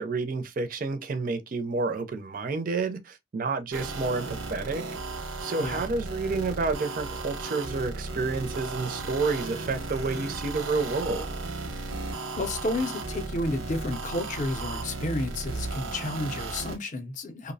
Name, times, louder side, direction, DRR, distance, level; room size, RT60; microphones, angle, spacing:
voice 1, 0.0-4.8 5.4-11.4, right 3 dB, 45° right, 0.4 m, -30 dB
sound 1, 3.7-16.8, right 3 dB, 90° right, 0.7 m, -35 dB
voice 2, 12.1-17.5, left 2 dB, 40° left, 0.5 m, -31 dB
2.6 x 2.0 x 2.6 m
head